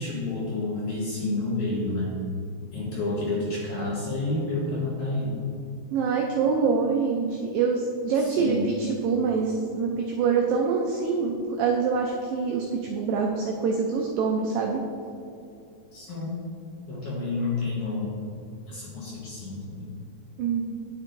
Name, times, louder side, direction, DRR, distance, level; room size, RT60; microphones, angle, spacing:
voice 1, 0.0-2.1 2.7-5.4 8.2-8.6 15.9-16.3 16.9-18.1 18.7-19.9, left 2 dB, 60° left, -6 dB, 2.1 m, -29 dB
voice 2, 5.9-14.8 20.4-20.7, right 5 dB, 85° right, 1 dB, 2.0 m, -25 dB
10.0 x 7.1 x 2.6 m, 2.7 s
omnidirectional pair, 4.6 m